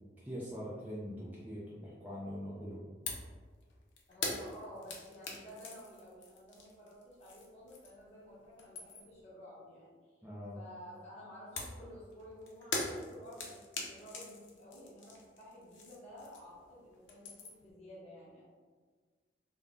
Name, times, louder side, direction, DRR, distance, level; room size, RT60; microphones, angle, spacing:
voice 1, 0.2-2.8 10.2-10.6, equal, 10° right, -7 dB, 0.4 m, -43 dB
sound 1, 3.1-3.3 3.6-8.1 8.4-9.2 11.6-16.7 16.9-17.7, left 3 dB, 85° left, 0.5 m, -42 dB
voice 2, 4.1-10.3 10.5-18.5, equal, 35° left, -7 dB, 0.9 m, -52 dB
2.3 x 2.0 x 3.6 m, 1.5 s
head